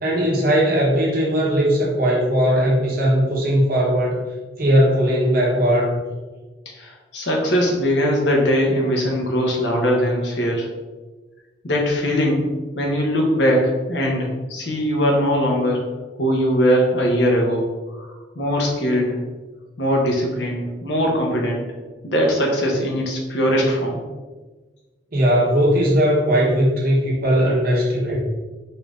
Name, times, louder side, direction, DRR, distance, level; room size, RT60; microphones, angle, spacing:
voice 1, 0.0-4.2 4.6-6.0 25.1-28.2, equal, 55° right, -4 dB, 1.2 m, -18 dB
voice 2, 6.8-10.7 11.6-15.8 16.2-17.6 18.0-18.1 18.3-19.2 19.8-21.6 22.0-24.0, equal, 75° left, -1 dB, 1.0 m, -20 dB
4.1 x 2.6 x 3.6 m, 1.3 s
head